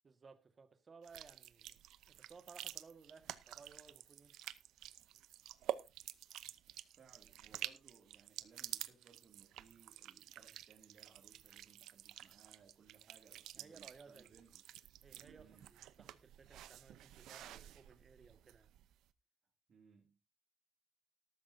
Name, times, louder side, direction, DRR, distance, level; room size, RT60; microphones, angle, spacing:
voice 1, 0.0-4.4 13.5-14.3 15.0-18.7, right 5 dB, 40° right, 1.7 m, -60 dB
sound 1, 1.0-18.9, right 12 dB, 85° right, 0.6 m, -50 dB
voice 2, 6.9-14.6 15.3-15.8 19.7-20.2, right 5 dB, 55° right, 2.6 m, -65 dB
13.5 x 12.5 x 2.7 m
cardioid pair, 90°, 0 cm